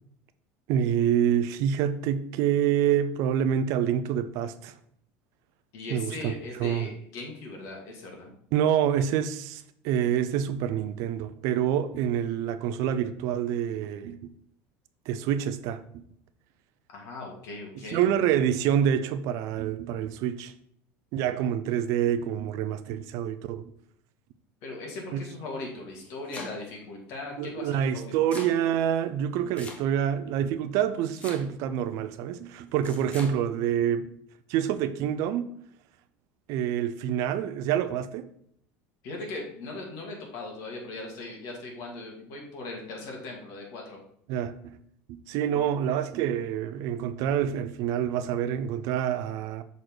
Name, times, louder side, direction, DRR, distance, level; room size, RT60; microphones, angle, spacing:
voice 1, 0.7-4.7 5.9-6.3 6.6-6.9 8.5-14.3 15.1-16.0 17.9-20.5 21.1-23.6 25.1-25.2 27.4-34.1 34.5-35.4 36.5-38.3 44.3-44.8 45.1-49.6, right 9 dB, 55° right, 0.5 m, -27 dB
voice 2, 5.7-8.3 16.9-18.0 24.6-28.3 39.0-44.0, left 2 dB, 55° left, 2.2 m, -39 dB
Domestic sounds home sounds, 25.8-26.8 27.8-28.6 29.5-30.2 31.1-31.7 32.8-33.4, left 2 dB, 20° left, 1.2 m, -42 dB
6.4 x 4.1 x 4.7 m
cardioid pair, 150°, 6 cm